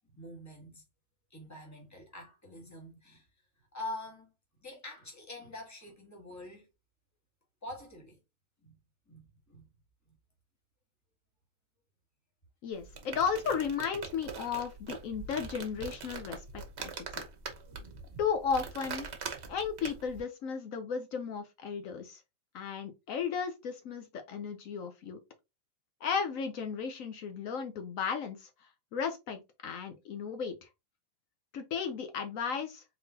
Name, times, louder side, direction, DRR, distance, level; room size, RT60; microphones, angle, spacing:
voice 1, 0.1-0.8 1.3-3.2 3.7-4.3 4.6-6.7 7.6-8.2 8.6-8.8 9.1-9.7 10.1-10.2, left 1 dB, 10° left, 1.3 m, -45 dB
voice 2, 12.6-16.9 18.2-19.1 19.5-22.2 22.5-25.2 26.0-30.7 31.5-32.8, left 6 dB, 70° left, 1.0 m, -35 dB
sound 1, 12.7-20.2, right 5 dB, 50° right, 1.1 m, -43 dB
4.0 x 3.7 x 2.7 m
omnidirectional pair, 1.5 m